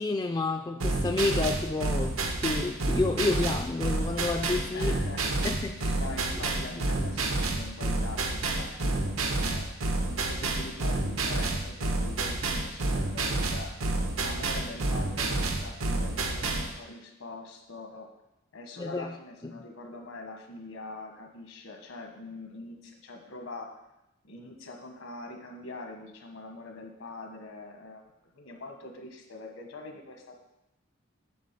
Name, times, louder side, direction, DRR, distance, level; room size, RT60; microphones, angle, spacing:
voice 1, 0.0-5.0 5.2-6.0 6.7-6.8 18.8-19.1, left 3 dB, 20° left, 5 dB, 0.3 m, -30 dB
sound 1, 0.8-16.7, right 2 dB, 90° right, 1.1 m, -29 dB
voice 2, 4.7-5.6 5.9-9.8 10.1-13.7 14.2-18.1 18.5-23.7 24.2-28.0 28.3-30.4, left 2 dB, 80° left, 3 dB, 1.4 m, -43 dB
8.7 x 4.0 x 6.8 m, 0.90 s
head